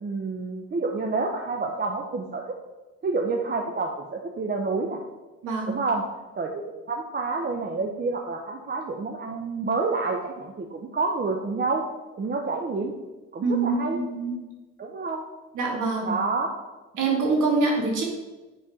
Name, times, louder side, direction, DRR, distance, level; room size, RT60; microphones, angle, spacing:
voice 1, 0.0-2.4 3.0-5.0 5.7-6.0 6.4-11.8 12.2-12.9 13.3-14.0 14.8-15.2 16.1-16.6, right 3 dB, 35° right, 2 dB, 0.8 m, -28 dB
voice 2, 5.4-5.8 13.4-14.4 15.5-16.2 17.0-18.0, right 3 dB, 80° right, 0 dB, 2.2 m, -25 dB
7.4 x 4.4 x 4.9 m, 1.1 s
cardioid pair, 90°, 30 cm